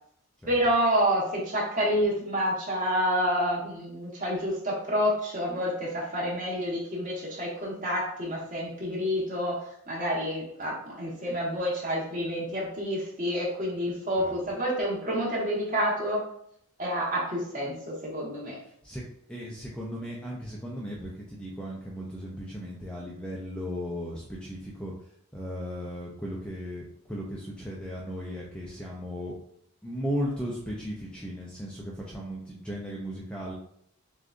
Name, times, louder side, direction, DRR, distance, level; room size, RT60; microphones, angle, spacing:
voice 1, 0.4-16.2 16.8-18.6, equal, 35° right, -5 dB, 1.2 m, -28 dB
voice 2, 19.3-24.9 25.3-29.3 29.8-33.5, equal, 5° left, -4 dB, 0.4 m, -36 dB
6.3 x 2.4 x 2.5 m, 0.69 s
head